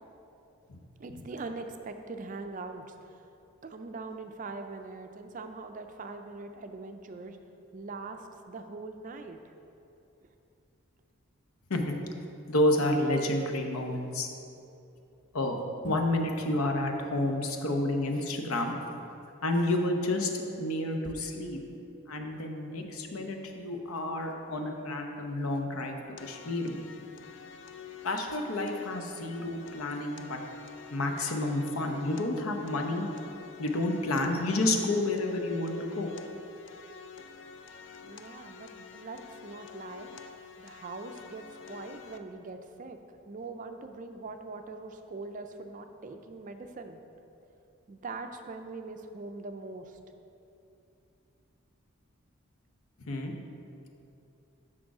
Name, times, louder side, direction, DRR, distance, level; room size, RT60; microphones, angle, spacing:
voice 1, 1.0-3.2 3.6-7.4 7.7-9.4 38.0-40.3 40.6-43.0 43.3-47.0 47.9-50.0, right 3 dB, 40° right, 7 dB, 0.4 m, -42 dB
voice 2, 12.5-14.3 15.3-15.6 15.8-18.7 19.4-21.6 22.1-26.8 28.0-30.4 30.9-33.1 33.6-36.1 53.0-53.3, left 1 dB, 85° left, 3 dB, 0.8 m, -30 dB
sound 1, 26.2-42.2, left 7 dB, 55° left, 0.4 m, -48 dB
6.3 x 6.1 x 4.8 m, 2.8 s
head